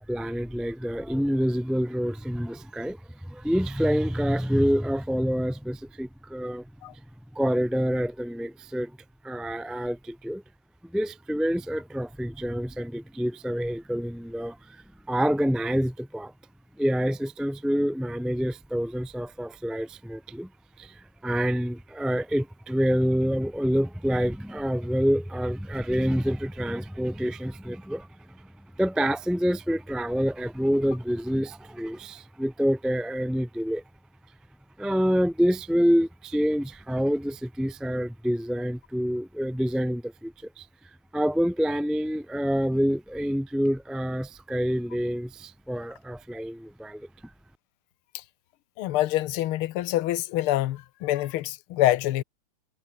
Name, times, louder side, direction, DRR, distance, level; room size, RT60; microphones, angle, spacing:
voice 1, 0.0-6.6 7.3-8.9 9.2-10.4 10.9-16.3 16.8-20.5 20.8-28.4 28.8-33.8 34.8-40.7 41.1-47.1, equal, ahead, 1.3 m, -27 dB
voice 2, 48.8-52.2, left 15 dB, 80° left, 1.7 m, -26 dB
omnidirectional pair, 2.4 m